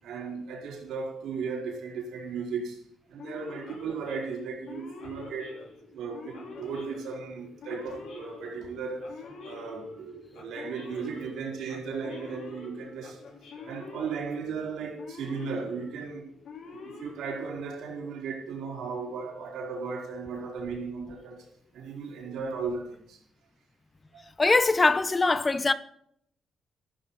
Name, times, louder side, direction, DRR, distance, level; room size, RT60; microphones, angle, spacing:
voice 1, 0.0-2.8 3.1-5.6 5.9-9.2 9.4-13.2 13.6-16.2 16.6-21.5 21.7-23.2 24.1-24.3, right 5 dB, 80° right, 4.5 m, -36 dB
Male speech man speaking / Siren, 3.2-17.9, left 4 dB, 60° left, 4.3 m, -46 dB
voice 2, 24.4-25.7, left 3 dB, 15° left, 0.7 m, -22 dB
14.0 x 12.5 x 4.0 m
cardioid pair, 170°, 0 cm